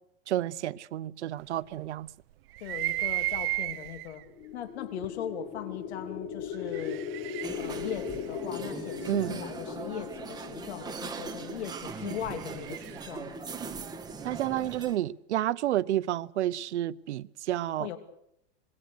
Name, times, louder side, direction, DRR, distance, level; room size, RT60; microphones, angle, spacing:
voice 1, 0.3-2.1 9.1-9.3 14.2-17.9, right 13 dB, 90° right, 0.8 m, -30 dB
sound 1, 2.5-4.2 5.0-5.1 6.5-9.3 11.4-13.2, right 16 dB, 60° right, 1.0 m, -35 dB
voice 2, 2.6-4.2 4.5-7.0 7.5-13.4 17.8-18.0, left 9 dB, 75° left, 3.1 m, -39 dB
sound 2, 4.2-12.4, left 7 dB, 20° left, 1.3 m, -39 dB
sound 3, 7.4-15.0, right 4 dB, 10° right, 1.6 m, -40 dB
26.5 x 21.0 x 6.6 m
supercardioid pair, 150°, 33 cm